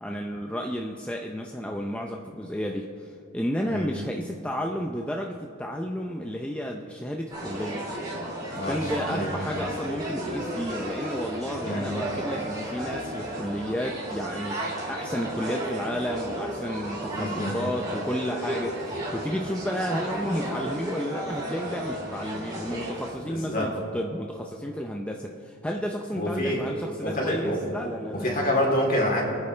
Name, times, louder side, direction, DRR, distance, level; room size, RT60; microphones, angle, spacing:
voice 1, 0.0-7.9 8.6-28.5, equal, 5° left, 1 dB, 0.5 m, -32 dB
sound 1, 7.3-23.1, right 1 dB, 20° right, 2.9 m, -33 dB
voice 2, 8.5-9.5 11.6-12.0 17.1-17.5 23.3-23.7 26.1-26.7 27.0-27.6 28.1-29.2, left 1 dB, 40° left, -2 dB, 3.1 m, -27 dB
28.0 x 9.5 x 3.3 m, 2.9 s
head